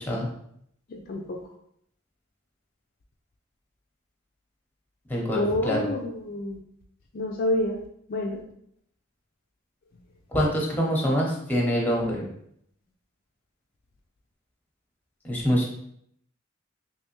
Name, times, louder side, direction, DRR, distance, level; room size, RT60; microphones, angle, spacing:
voice 1, 0.9-1.4 5.3-6.6 7.1-7.8 8.1-8.4, left 1 dB, 50° left, 1 dB, 0.4 m, -28 dB
voice 2, 5.1-5.8 10.3-12.2 15.2-15.7, equal, 10° left, -2 dB, 0.8 m, -25 dB
3.3 x 3.0 x 3.0 m, 0.69 s
head